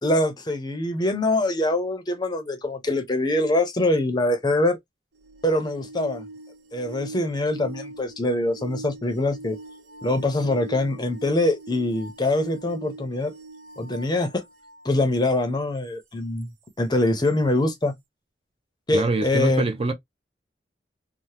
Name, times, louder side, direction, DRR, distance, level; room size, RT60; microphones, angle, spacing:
voice 1, 0.0-4.8 5.4-6.2 6.7-9.6 10.0-13.3 13.8-14.4 14.8-16.5 16.8-17.9 18.9-19.6, left 1 dB, 25° left, 0.6 m, -24 dB
sound 1, 5.2-14.9 17.3-17.4, right 2 dB, 90° right, 0.7 m, -41 dB
voice 2, 18.9-19.9, right 3 dB, 35° right, 0.5 m, -24 dB
2.7 x 2.1 x 3.1 m
head